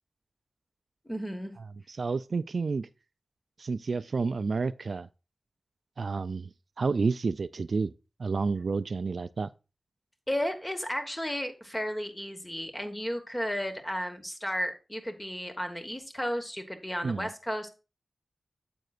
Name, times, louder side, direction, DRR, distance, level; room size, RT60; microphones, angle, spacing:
voice 1, 1.0-1.5 10.3-17.7, equal, 15° left, 1.3 m, -33 dB
voice 2, 1.9-2.9 3.6-5.1 6.0-6.5 6.8-7.9 8.2-9.5 17.0-17.3, right 4 dB, 65° right, 0.3 m, -30 dB
9.2 x 7.7 x 2.4 m
wide cardioid pair, 100°, 0 cm